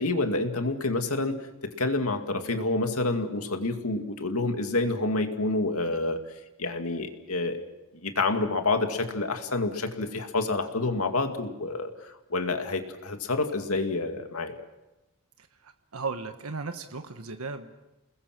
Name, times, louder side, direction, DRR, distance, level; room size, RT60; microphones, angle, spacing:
voice 1, 0.0-6.2 6.6-7.6 7.9-11.9 12.3-14.5, left 2 dB, 85° left, 5 dB, 2.3 m, -28 dB
voice 2, 15.4-17.8, right 4 dB, 90° right, 7 dB, 1.3 m, -36 dB
29.5 x 21.0 x 6.1 m, 1.0 s
head